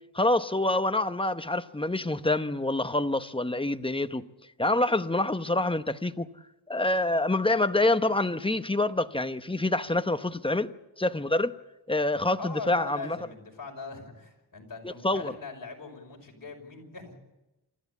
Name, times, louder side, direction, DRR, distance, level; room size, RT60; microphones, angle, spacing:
voice 1, 0.1-4.3 4.6-6.3 6.7-10.7 11.0-11.5 11.9-13.2 14.8-15.3, left 2 dB, 10° left, 0.8 m, -26 dB
voice 2, 12.4-17.2, left 4 dB, 50° left, 5.6 m, -41 dB
28.0 x 14.5 x 8.4 m
wide cardioid pair, 95°, 44 cm